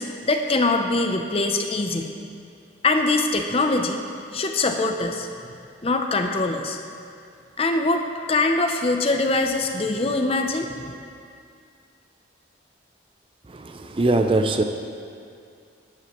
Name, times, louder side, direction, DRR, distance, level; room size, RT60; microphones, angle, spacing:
voice 1, 0.0-2.1 2.8-4.0 4.3-5.3 5.8-6.8 7.6-10.9, left 2 dB, 30° left, 5 dB, 0.5 m, -23 dB
voice 2, 13.5-14.6, right 2 dB, 25° right, 6 dB, 0.4 m, -22 dB
13.0 x 9.8 x 3.0 m, 2.4 s
head